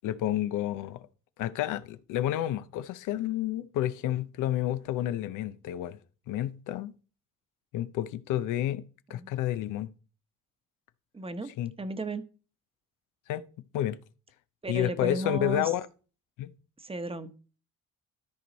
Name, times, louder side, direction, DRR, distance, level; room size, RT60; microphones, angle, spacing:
voice 1, 0.0-1.1 1.4-6.0 6.3-6.9 7.7-8.8 9.1-9.9 11.6-11.7 13.3-13.4 13.7-14.0 14.7-15.9 16.4-16.5, left 12 dB, 90° left, 0.6 m, -30 dB
voice 2, 11.1-11.5 11.8-12.2 14.6-15.6 16.8-17.3, right 2 dB, 20° right, 1.0 m, -34 dB
13.0 x 4.7 x 4.0 m
cardioid pair, 90°, 30 cm